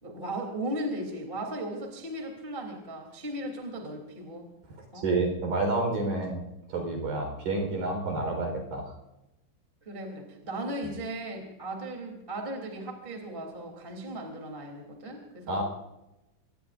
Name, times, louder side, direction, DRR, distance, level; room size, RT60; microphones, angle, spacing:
voice 1, 0.0-4.5 4.9-5.1 7.4-7.5 9.8-15.6, right 1 dB, 15° right, 2 dB, 2.5 m, -37 dB
voice 2, 5.0-6.4 6.7-8.9 15.5-15.6, right 2 dB, 50° right, 2 dB, 5.8 m, -29 dB
25.5 x 19.0 x 2.6 m, 0.91 s
omnidirectional pair, 5.5 m